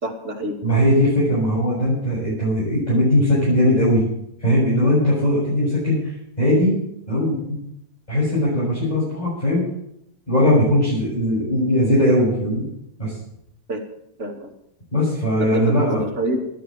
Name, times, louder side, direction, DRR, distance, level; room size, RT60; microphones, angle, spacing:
voice 1, 0.0-0.5 10.6-10.8 13.7-13.8 14.2-14.5 15.4-16.5, right 1 dB, 50° right, 0 dB, 3.0 m, -26 dB
voice 2, 0.6-4.1 4.4-6.7 7.1-7.6 8.1-9.7 10.3-12.7 13.0-13.1 14.9-16.0, left 1 dB, 25° left, -9 dB, 7.3 m, -19 dB
13.5 x 9.5 x 8.9 m, 0.76 s
omnidirectional pair, 1.6 m